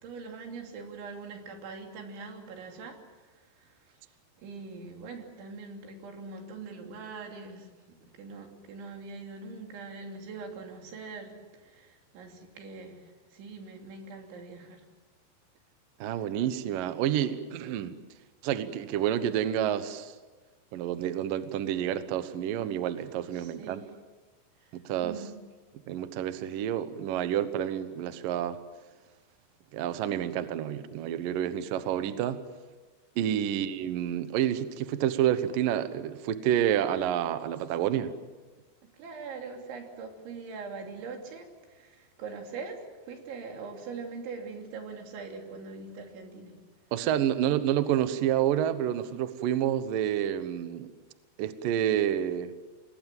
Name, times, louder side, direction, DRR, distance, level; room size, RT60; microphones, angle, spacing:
voice 1, 0.0-14.9 23.3-23.9 24.6-25.4 38.8-46.6, right 4 dB, 90° right, 3 dB, 5.4 m, -43 dB
voice 2, 16.0-17.9 18.4-20.1 20.7-23.8 24.7-25.1 25.9-28.6 29.7-32.4 33.2-38.1 46.9-50.9 51.4-52.5, right 10 dB, 70° right, 11 dB, 2.3 m, -29 dB
27.0 x 20.5 x 7.7 m, 1.3 s
omnidirectional pair, 5.2 m